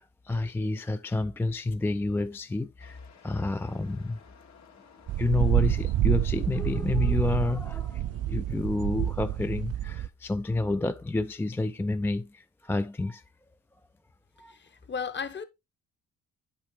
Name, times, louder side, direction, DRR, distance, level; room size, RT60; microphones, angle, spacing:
voice 1, 0.0-3.0 3.2-4.2 5.2-13.2 14.4-14.6, left 2 dB, 10° left, 0.3 m, -29 dB
sound 1, 2.8-9.1, left 6 dB, 65° left, 2.1 m, -56 dB
sound 2, 5.1-10.1, right 13 dB, 55° right, 0.4 m, -28 dB
voice 2, 14.5-15.4, left 6 dB, 35° left, 1.2 m, -35 dB
8.9 x 5.5 x 3.2 m
cardioid pair, 90°, 30 cm